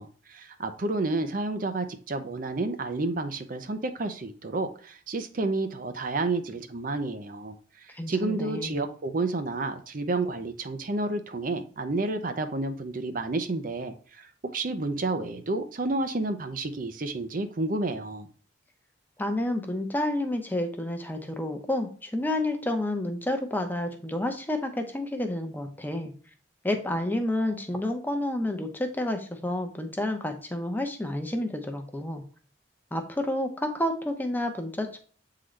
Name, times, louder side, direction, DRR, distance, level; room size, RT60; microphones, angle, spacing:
voice 1, 0.0-18.3, right 2 dB, 50° right, 0.6 m, -30 dB
voice 2, 7.9-8.8 19.2-26.1 26.6-32.2 32.9-35.0, left 1 dB, 10° left, 0.8 m, -30 dB
8.2 x 3.8 x 3.2 m
head